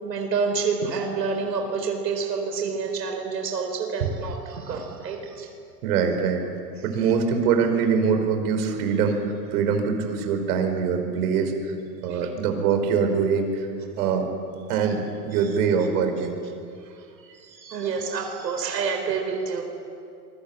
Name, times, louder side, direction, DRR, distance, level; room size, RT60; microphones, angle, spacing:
voice 1, 0.0-5.5 12.1-12.2 16.8-19.6, right 5 dB, 85° right, 3 dB, 4.4 m, -28 dB
voice 2, 5.8-6.4 6.8-11.7 12.0-13.7 14.0-14.3 14.7-16.4, right 6 dB, 65° right, 5 dB, 5.0 m, -23 dB
26.0 x 23.0 x 8.8 m, 2.4 s
hypercardioid pair, 110°, 49 cm